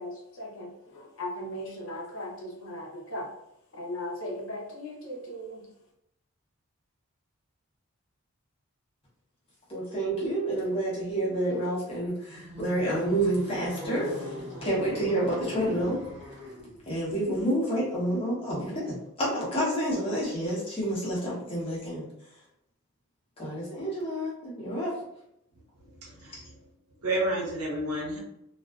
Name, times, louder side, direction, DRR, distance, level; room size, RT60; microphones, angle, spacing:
voice 1, 0.0-3.3 3.7-5.6, left 1 dB, 60° left, -3 dB, 0.7 m, -38 dB
voice 2, 9.7-14.3 14.6-16.0 16.9-22.1 23.4-24.9 26.3-26.4, right 1 dB, 25° left, -6 dB, 0.8 m, -29 dB
sound 1, 12.2-16.9, equal, 55° right, 0.9 m, -40 dB
voice 3, 25.8-26.5 27.0-28.2, right 1 dB, 90° right, -3 dB, 0.8 m, -31 dB
2.3 x 2.3 x 2.3 m, 0.81 s
head